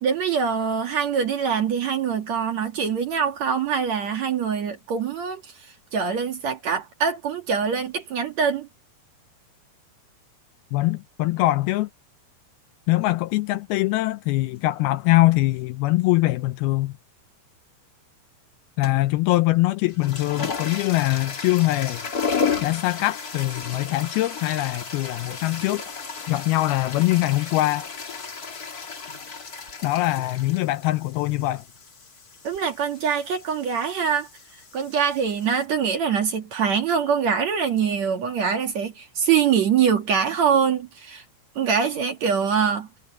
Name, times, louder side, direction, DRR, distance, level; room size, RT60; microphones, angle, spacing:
voice 1, 0.0-5.5 5.9-8.7 32.4-34.3 34.7-41.2 41.6-42.9, right 7 dB, 50° right, 2.5 m, -24 dB
voice 2, 10.7-11.9 12.9-16.9 18.8-22.0 22.6-25.8 26.3-27.9 29.8-31.6, left 18 dB, 80° left, 2.3 m, -22 dB
sound 1, 18.8-19.2 19.8-35.6, left 5 dB, 40° left, 1.4 m, -34 dB
omnidirectional pair, 4.8 m